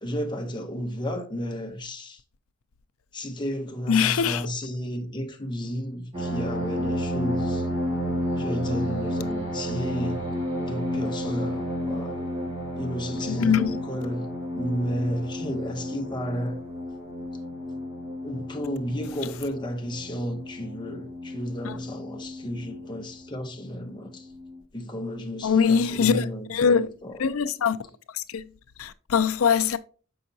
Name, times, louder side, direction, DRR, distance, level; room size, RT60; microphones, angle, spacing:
voice 1, 0.0-2.2 3.1-7.7 8.3-10.3 10.7-12.2 12.8-14.3 14.5-16.6 18.2-24.3 24.7-27.2, equal, 20° left, 0.8 m, -32 dB
voice 2, 3.9-4.5 13.3-13.8 21.6-21.8 25.4-26.9 27.2-27.8 28.1-28.4 28.8-29.8, left 6 dB, 85° left, 0.5 m, -22 dB
sound 1, 6.1-23.1 23.8-23.9 24.3-24.6, equal, 25° right, 2.1 m, -31 dB
6.4 x 5.6 x 2.7 m
head